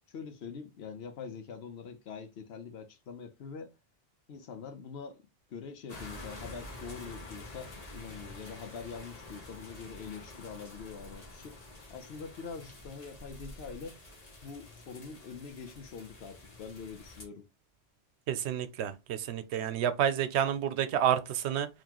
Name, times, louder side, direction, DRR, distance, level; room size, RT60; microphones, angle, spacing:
voice 1, 0.1-3.7 4.3-5.2 5.5-11.6 11.9-14.0 14.4-17.5, left 6 dB, 75° left, 0.9 m, -44 dB
sound 1, 5.9-17.3, left 1 dB, 40° left, 1.1 m, -48 dB
voice 2, 18.3-21.7, right 9 dB, 85° right, 0.9 m, -29 dB
3.9 x 3.0 x 2.9 m
omnidirectional pair, 1.1 m